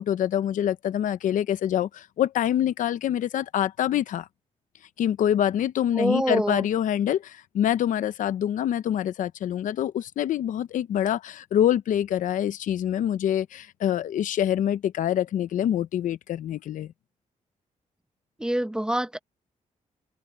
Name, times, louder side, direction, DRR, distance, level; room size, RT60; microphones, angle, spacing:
voice 1, 0.0-4.3 5.0-16.9, left 10 dB, 85° left, 0.7 m, -25 dB
voice 2, 5.9-6.7 18.4-19.2, right 1 dB, 5° right, 1.1 m, -25 dB
open air
wide cardioid pair, 160°, 13 cm